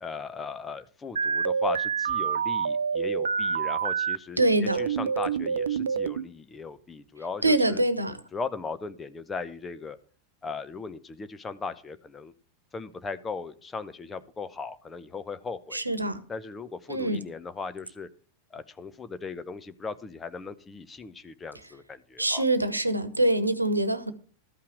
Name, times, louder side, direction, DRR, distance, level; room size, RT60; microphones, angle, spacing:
voice 1, 0.0-4.4 4.8-7.8 8.3-10.0 10.4-12.3 12.7-15.8 16.3-18.1 18.5-22.4, left 4 dB, 15° left, 0.8 m, -38 dB
sound 1, 1.2-4.2 4.7-6.3, right 6 dB, 70° right, 0.4 m, -27 dB
voice 2, 4.4-4.9 7.4-8.2 15.7-16.2 16.9-17.2 22.2-24.1, right 1 dB, 85° right, 1.1 m, -24 dB
13.5 x 5.7 x 6.3 m
figure-of-eight pair, 90°, 0 cm